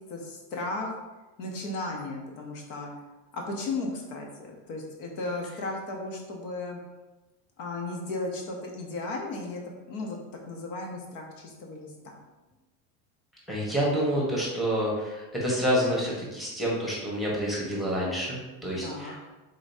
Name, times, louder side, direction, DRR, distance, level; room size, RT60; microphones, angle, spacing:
voice 1, 0.1-1.0 1.4-2.9 3.3-6.8 7.6-10.2 10.4-12.2 18.8-19.1, left 2 dB, 65° left, 1 dB, 1.1 m, -35 dB
voice 2, 13.5-19.3, equal, ahead, -5 dB, 1.1 m, -28 dB
5.0 x 3.8 x 2.7 m, 1.1 s
supercardioid pair, 125°, 45 cm